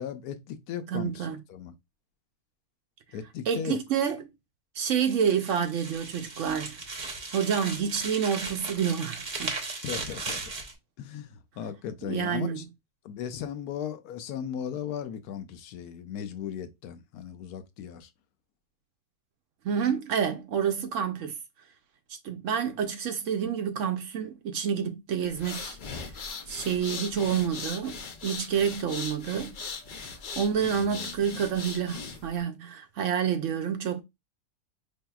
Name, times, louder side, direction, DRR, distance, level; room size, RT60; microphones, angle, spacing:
voice 1, 0.0-1.8 3.1-3.8 9.8-10.4 11.0-12.6 13.0-18.1 30.7-31.2, left 8 dB, 85° left, 1.1 m, -37 dB
voice 2, 0.9-1.4 3.5-4.3 4.8-6.8 7.3-9.6 10.2-10.3 12.0-12.6 19.6-21.4 22.2-25.8 26.5-29.6 30.0-30.1 30.4-34.0, right 7 dB, 65° right, 0.8 m, -28 dB
sound 1, 4.8-10.7, right 3 dB, 35° right, 0.8 m, -37 dB
sound 2, 25.3-32.4, left 5 dB, 60° left, 0.5 m, -39 dB
5.1 x 2.7 x 2.2 m
omnidirectional pair, 1.6 m